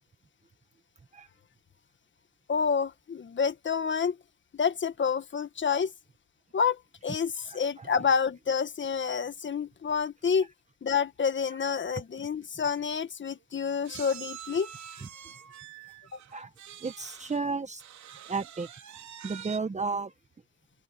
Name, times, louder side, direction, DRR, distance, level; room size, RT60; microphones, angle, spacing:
voice 1, 2.5-4.2 4.5-5.9 6.5-10.5 10.8-14.7 16.1-16.2, left 6 dB, 40° left, 1.6 m, -28 dB
voice 2, 7.5-7.9 11.9-12.0 16.3-16.5 16.8-17.8 18.3-18.7 19.2-20.1, right 4 dB, 25° right, 1.2 m, -33 dB
sound 1, 12.4-12.5 12.7-12.9 13.9-17.4 17.8-19.6, right 10 dB, 70° right, 3.3 m, -46 dB
open air
cardioid pair, 90°, 30 cm